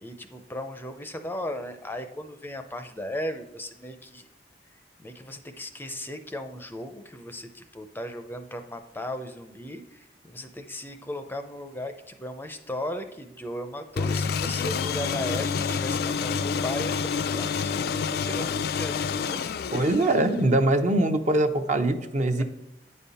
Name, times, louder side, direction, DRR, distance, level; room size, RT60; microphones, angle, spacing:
voice 1, 0.0-4.3 5.0-19.4 20.8-20.9 22.3-22.4, left 1 dB, 10° left, 7 dB, 0.5 m, -36 dB
sound 1, 14.0-20.5, left 6 dB, 60° left, 0.4 m, -28 dB
voice 2, 19.7-22.4, right 1 dB, 45° right, 6 dB, 0.8 m, -22 dB
9.3 x 5.5 x 4.2 m, 0.91 s
head